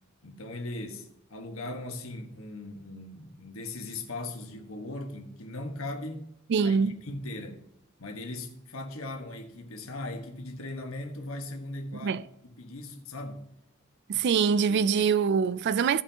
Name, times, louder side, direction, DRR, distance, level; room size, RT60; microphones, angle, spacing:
voice 1, 0.2-6.3 6.6-7.6 8.0-12.2 12.6-13.4 14.7-14.9, left 2 dB, 75° left, 1.5 m, -39 dB
voice 2, 6.5-7.0 12.0-12.2 14.1-16.0, right 6 dB, 55° right, 0.3 m, -24 dB
16.5 x 5.7 x 2.9 m
head